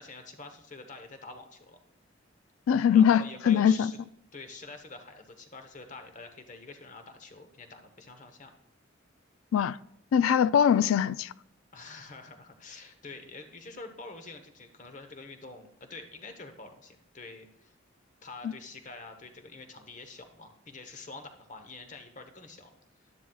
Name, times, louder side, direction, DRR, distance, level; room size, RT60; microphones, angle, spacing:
voice 1, 0.0-1.8 2.9-4.0 4.3-8.5 11.7-17.7 18.2-22.7, left 3 dB, 40° left, 1.0 m, -46 dB
voice 2, 2.7-3.9 9.5-9.8 10.1-11.3 18.4-18.5, left 8 dB, 90° left, 0.3 m, -22 dB
11.5 x 11.5 x 2.4 m
head